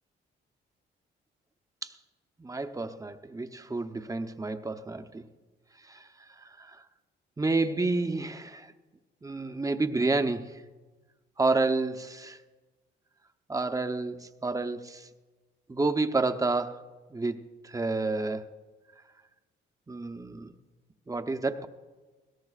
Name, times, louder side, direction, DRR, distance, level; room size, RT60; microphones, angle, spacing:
voice 1, 2.4-5.2 5.9-6.1 6.6-6.8 7.4-8.7 9.2-10.5 11.4-12.4 13.5-15.1 15.7-16.8 17.1-17.4 17.6-18.5 19.9-20.5 21.1-21.7, right 3 dB, 15° right, 9 dB, 0.8 m, -29 dB
20.5 x 17.5 x 2.4 m, 1.3 s
cardioid pair, 90°, 20 cm